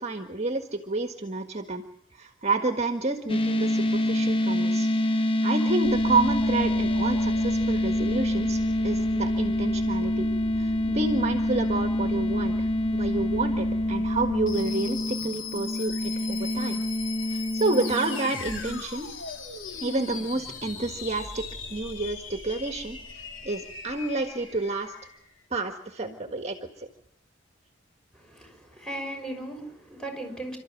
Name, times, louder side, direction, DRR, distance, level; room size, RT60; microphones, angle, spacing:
voice 1, 0.0-1.8 2.1-10.3 10.6-16.8 17.3-19.1 19.8-24.9 25.5-26.9, right 3 dB, 35° right, 5 dB, 1.6 m, -30 dB
sound 1, 3.3-18.8, left 1 dB, 30° left, 1.1 m, -26 dB
sound 2, 5.8-25.2, left 4 dB, 80° left, 3.0 m, -39 dB
voice 2, 28.1-30.6, right 1 dB, 5° left, 2 dB, 6.3 m, -37 dB
29.0 x 13.0 x 9.4 m, 0.77 s
head